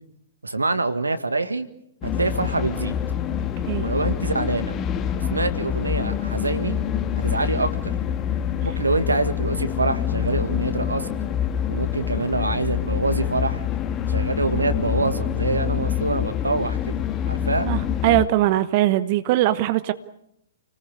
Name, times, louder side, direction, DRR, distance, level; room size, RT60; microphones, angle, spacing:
voice 1, 0.4-1.7 2.0-3.0 3.8-4.8 5.3-6.8 7.2-7.9 8.6-11.1 11.7-13.6 14.1-17.7, right 3 dB, 80° right, 10 dB, 1.9 m, -25 dB
sound 1, 2.0-18.3, left 9 dB, 25° left, 1.8 m, -26 dB
voice 2, 17.7-19.9, right 15 dB, 40° right, 13 dB, 1.0 m, -21 dB
29.5 x 19.5 x 8.4 m, 0.80 s
figure-of-eight pair, 115°, 0 cm